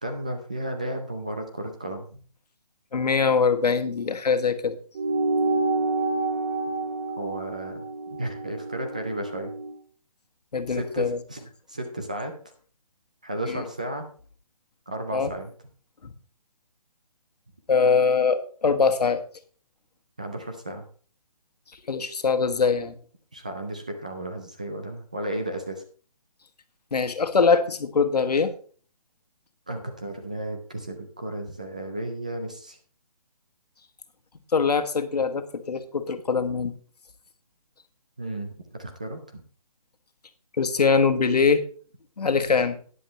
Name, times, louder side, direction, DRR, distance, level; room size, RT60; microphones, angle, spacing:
voice 1, 0.0-2.2 7.2-7.8 8.1-9.5 10.7-12.3 13.2-14.1 14.9-15.5 20.2-20.8 23.3-25.8 29.7-32.8 38.2-38.5 38.8-39.4 42.3-42.5, right 1 dB, 10° right, 4 dB, 0.4 m, -33 dB
voice 2, 2.9-4.8 10.5-11.2 15.1-15.3 16.0-16.1 17.7-19.2 21.9-22.9 26.9-28.5 34.5-36.7 40.6-41.6 42.2-42.8, left 5 dB, 85° left, 8 dB, 1.5 m, -22 dB
sound 1, 4.9-9.8, right 3 dB, 35° right, 1.7 m, -28 dB
12.5 x 10.0 x 3.1 m, 0.42 s
hypercardioid pair, 170°, 20 cm